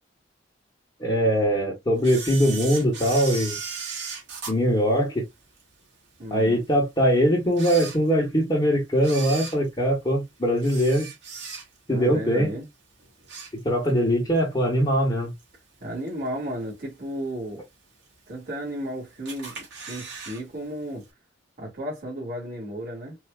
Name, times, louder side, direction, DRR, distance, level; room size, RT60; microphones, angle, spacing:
voice 1, 1.0-3.6 4.5-5.2 6.3-11.1 11.9-12.5 13.6-15.3, equal, 25° left, 1.5 m, -22 dB
Camera, 2.0-5.6 6.1-6.2 6.9-7.0 7.5-8.5 9.0-12.0 12.3-12.6 13.0-14.0 14.4-14.5 15.4-15.5 16.1-16.5 16.9-17.0 17.2-17.3 17.4-17.5 18.3-18.8 19.3-20.4 20.7-20.8 21.0-21.1, right 5 dB, 65° right, 2.4 m, -37 dB
voice 2, 6.2-6.6 11.9-12.7 15.8-17.6 18.3-21.1 21.6-23.2, equal, 50° right, 2.4 m, -34 dB
4.6 x 3.1 x 2.4 m
head